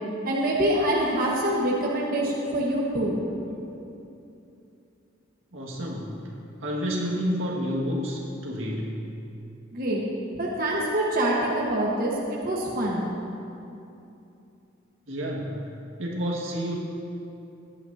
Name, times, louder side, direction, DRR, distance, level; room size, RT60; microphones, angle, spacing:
voice 1, 0.2-3.2 9.7-10.0 10.3-13.1, right 1 dB, 45° right, -4 dB, 1.3 m, -25 dB
voice 2, 5.5-9.2 15.1-16.8, equal, 85° right, -3 dB, 1.9 m, -30 dB
17.0 x 11.0 x 2.8 m, 2.8 s
head